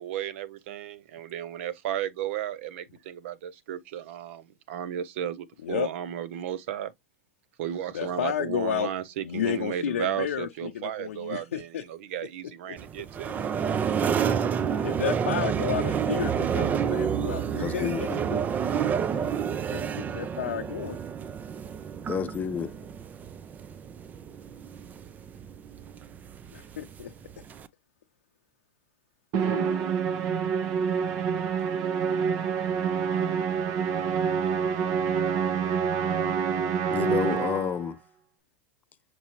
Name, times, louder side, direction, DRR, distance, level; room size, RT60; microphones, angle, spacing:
voice 1, 0.0-6.9 7.6-13.4, right 10 dB, 65° right, 0.6 m, -34 dB
voice 2, 7.9-8.9 9.2-11.8 12.7-12.8 14.8-18.4 19.7-21.0 26.5-27.1, left 9 dB, 90° left, 0.6 m, -32 dB
sound 1, 12.8-27.7, right 7 dB, 25° right, 0.4 m, -29 dB
voice 3, 17.6-18.1 22.1-22.8 36.9-38.0, left 7 dB, 25° left, 0.6 m, -29 dB
Musical instrument, 29.3-37.8, right 7 dB, 45° right, 0.9 m, -27 dB
5.9 x 2.7 x 2.9 m
hypercardioid pair, 120°, 7 cm